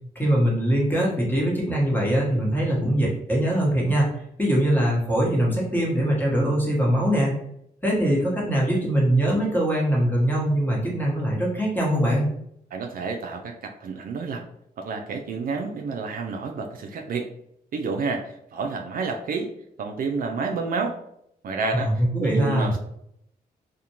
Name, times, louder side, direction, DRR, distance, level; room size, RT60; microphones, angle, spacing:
voice 1, 0.1-7.3 7.8-12.3 21.7-22.7, right 1 dB, 10° left, -4 dB, 1.1 m, -22 dB
voice 2, 12.7-14.4 14.8-17.3 17.7-19.5 19.8-21.0 21.4-21.9 22.2-22.8, right 4 dB, 60° right, 3 dB, 0.4 m, -29 dB
2.4 x 2.1 x 2.9 m, 0.74 s
cardioid pair, 70°, 17 cm